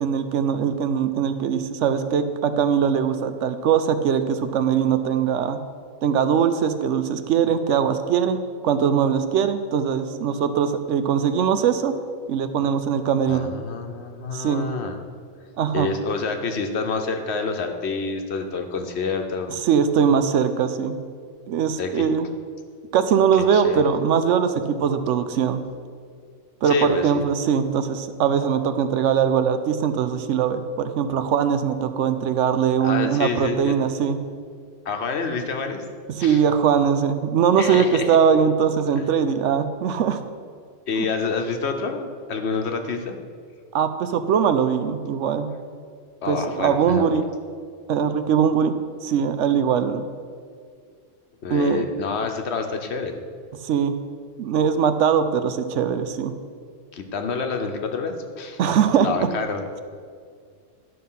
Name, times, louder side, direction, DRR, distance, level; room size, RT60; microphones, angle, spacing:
voice 1, 0.0-5.6 6.0-8.4 8.6-11.9 12.3-13.5 14.3-14.7 15.6-15.9 19.6-21.0 21.5-22.3 22.9-25.6 26.6-34.2 36.2-40.2 41.0-41.1 43.7-45.5 46.3-47.3 47.9-48.7 49.0-50.0 51.5-51.8 53.6-53.9 54.4-56.3 58.6-59.3, right 7 dB, 70° right, 10 dB, 0.9 m, -21 dB
voice 2, 13.3-15.0 15.7-19.5 21.8-22.0 23.5-23.8 26.6-27.3 32.8-33.7 34.8-35.8 36.2-36.4 37.6-38.1 40.9-43.2 46.2-47.1 51.4-53.2 56.9-58.6 59.0-59.7, left 4 dB, 60° left, 5 dB, 1.1 m, -28 dB
11.5 x 5.7 x 5.6 m, 2.1 s
omnidirectional pair, 1.3 m